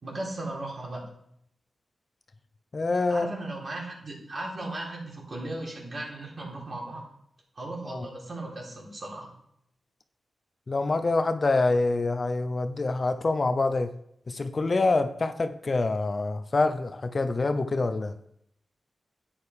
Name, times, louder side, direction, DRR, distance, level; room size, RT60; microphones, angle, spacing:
voice 1, 0.0-1.1 3.1-7.1 7.6-9.3, right 2 dB, 50° right, -2 dB, 4.1 m, -36 dB
voice 2, 2.7-3.3 7.9-8.1 10.7-13.9 14.3-18.1, left 3 dB, 45° left, 9 dB, 0.7 m, -26 dB
12.0 x 9.0 x 4.9 m, 0.74 s
wide cardioid pair, 85°, 0 cm